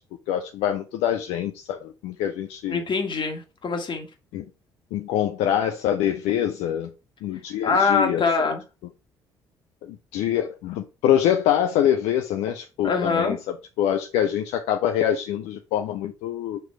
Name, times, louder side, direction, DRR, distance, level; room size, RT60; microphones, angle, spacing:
voice 1, 0.3-2.8 4.3-4.4 4.9-6.9 7.2-8.5 9.8-16.6, left 10 dB, 75° left, 0.5 m, -25 dB
voice 2, 2.7-4.1 7.6-8.6 12.8-13.4, left 4 dB, 45° left, 1.7 m, -23 dB
6.9 x 3.1 x 4.7 m
hypercardioid pair, 55°, 11 cm